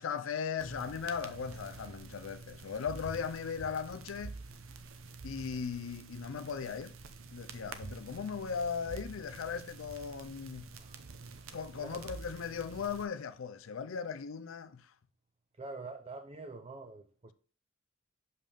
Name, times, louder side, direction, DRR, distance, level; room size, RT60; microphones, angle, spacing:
voice 1, 0.0-4.4 5.2-7.0 7.3-10.7 11.5-14.9, left 6 dB, 70° left, 0.4 m, -38 dB
sound 1, 0.6-13.1, right 4 dB, 90° right, 0.8 m, -48 dB
voice 2, 10.7-11.0 11.4-12.1 15.6-17.3, right 3 dB, 30° right, 0.5 m, -46 dB
6.8 x 5.6 x 3.4 m
head